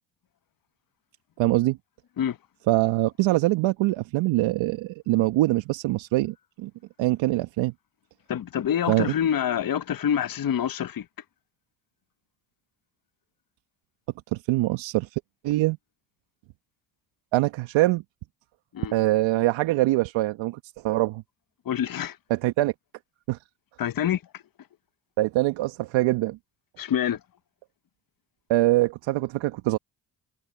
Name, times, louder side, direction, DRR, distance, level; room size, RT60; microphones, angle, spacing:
voice 1, 1.4-1.8 2.7-6.7 7.0-7.7 8.9-9.1 14.3-15.1 15.4-15.8 17.3-18.0 18.9-21.2 22.3-22.7 23.3-23.4 25.2-26.4 28.5-29.8, right 17 dB, 75° right, 1.4 m, -23 dB
voice 2, 8.3-11.0 18.7-18.9 21.6-22.2 23.8-24.4 26.8-27.2, left 9 dB, 45° left, 1.2 m, -26 dB
hypercardioid pair, 55°, 46 cm